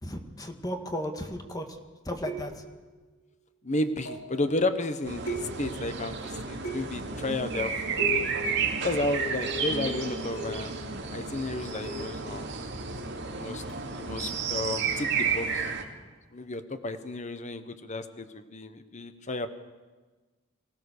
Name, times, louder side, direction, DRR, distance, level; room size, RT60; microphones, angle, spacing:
voice 1, 0.0-1.7 2.0-2.5, equal, 20° left, 5 dB, 1.7 m, -34 dB
sound 1, 2.2-2.8 4.0-4.4 5.3-5.9 6.6-7.1 8.0-8.5 9.1-10.8 11.8-12.3 13.7-13.9, equal, 70° left, 4.7 m, -37 dB
voice 2, 3.6-7.7 8.0-8.4 8.8-10.8 11.1-12.5 13.3-13.6 13.9-15.7 16.3-19.5, left 2 dB, 35° left, 10 dB, 1.1 m, -32 dB
sound 2, 5.0-15.8, right 5 dB, 60° right, 2.4 m, -32 dB
24.5 x 16.0 x 6.7 m, 1.3 s
head